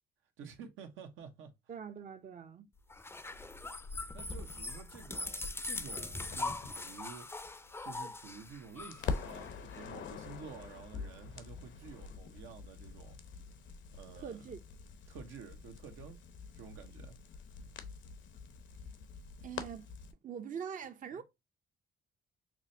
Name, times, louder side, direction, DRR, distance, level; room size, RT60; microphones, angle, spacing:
voice 1, 0.4-1.5 4.1-7.3 7.8-13.2 13.9-14.4 15.1-16.2 16.5-17.2, right 6 dB, 85° right, 0.9 m, -50 dB
voice 2, 1.7-2.7 14.1-14.6 19.4-19.9 20.2-21.2, right 7 dB, 40° right, 0.6 m, -43 dB
sound 1, 2.9-9.8, left 2 dB, 10° left, 0.5 m, -41 dB
Crackle, 6.3-8.5 8.8-20.1, left 5 dB, 70° left, 0.8 m, -45 dB
5.9 x 2.2 x 2.6 m
cardioid pair, 90°, 20 cm